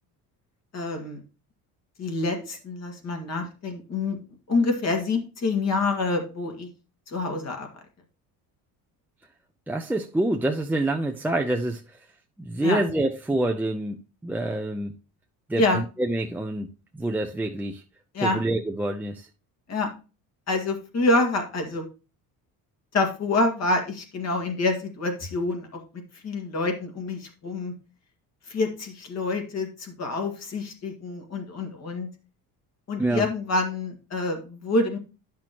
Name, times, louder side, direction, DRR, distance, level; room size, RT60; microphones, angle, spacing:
voice 1, 0.7-1.2 2.0-4.2 4.5-6.7 7.1-7.7 12.6-12.8 15.6-15.8 18.1-18.4 19.7-19.9 20.5-21.8 22.9-25.8 26.2-27.7 28.5-32.1 32.9-35.0, left 2 dB, 40° left, 2.0 m, -27 dB
voice 2, 9.7-11.8 12.4-14.0 14.2-14.9 15.5-16.7 16.9-17.8 18.2-19.3 33.0-33.3, right 1 dB, 5° right, 0.5 m, -26 dB
10.0 x 6.1 x 2.9 m
cardioid pair, 120°, 38 cm